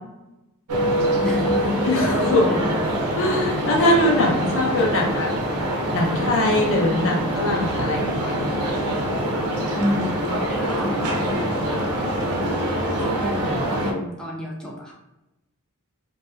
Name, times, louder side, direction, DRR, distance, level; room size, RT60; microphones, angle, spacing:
sound 1, 0.7-13.9, right 1 dB, 85° right, 0.5 m, -24 dB
voice 1, 1.2-2.8 3.9-4.0 4.8-4.9 9.8-11.8 13.0-14.9, left 1 dB, 5° left, -3 dB, 0.3 m, -30 dB
voice 2, 1.8-2.6 3.1-5.3 5.9-8.3, left 1 dB, 60° left, 0 dB, 0.6 m, -22 dB
2.7 x 2.1 x 2.3 m, 0.95 s
head